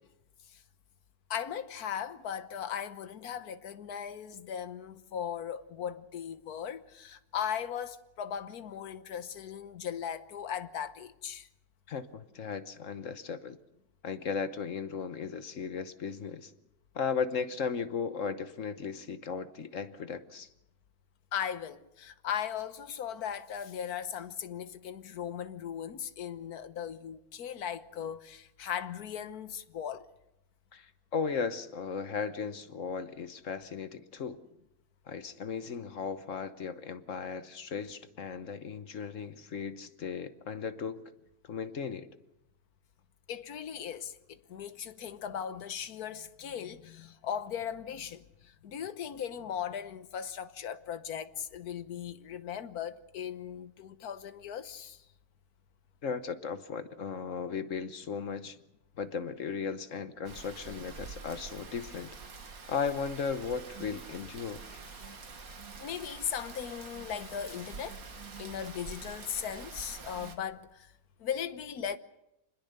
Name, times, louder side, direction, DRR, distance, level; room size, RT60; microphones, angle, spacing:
voice 1, 1.3-11.5 21.3-30.1 43.3-55.0 65.8-68.0 68.4-70.9 71.2-72.0, left 8 dB, 70° left, 1.6 m, -38 dB
voice 2, 11.9-13.6 14.0-16.5 16.9-20.5 30.7-34.4 35.1-41.0 41.5-42.1 56.0-58.6 59.0-62.1 62.7-64.6, left 6 dB, 55° left, 1.4 m, -36 dB
Rain, 60.3-70.4, right 4 dB, 65° right, 2.3 m, -46 dB
26.5 x 20.5 x 6.7 m
omnidirectional pair, 1.7 m